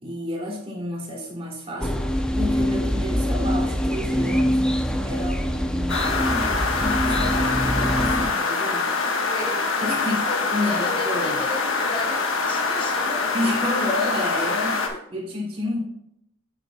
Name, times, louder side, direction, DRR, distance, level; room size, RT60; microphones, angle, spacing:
voice 1, 0.0-4.6 5.0-9.0 9.8-11.4 13.3-15.8, left 1 dB, 30° right, -2 dB, 2.8 m, -30 dB
sound 1, 1.8-8.3, equal, 5° left, 0.7 m, -24 dB
sound 2, 5.9-14.9, left 4 dB, 80° left, 1.4 m, -24 dB
voice 2, 9.3-9.7 10.6-13.5 14.9-15.0, left 1 dB, 25° left, 2 dB, 1.0 m, -35 dB
8.9 x 8.4 x 2.3 m, 0.75 s
head